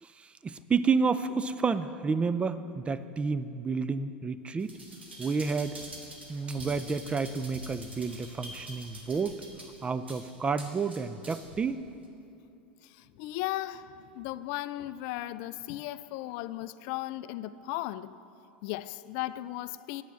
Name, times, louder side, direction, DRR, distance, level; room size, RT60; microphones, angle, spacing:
voice 1, 0.0-4.8 5.2-5.8 6.3-9.4 9.8-11.8, right 5 dB, 20° right, 0.4 m, -30 dB
sound 1, 4.6-11.6 12.0-12.1, right 1 dB, 90° right, 1.4 m, -46 dB
voice 2, 12.8-18.2 18.6-20.0, left 15 dB, 55° left, 0.3 m, -36 dB
9.1 x 6.4 x 7.0 m
hypercardioid pair, 85°, 6 cm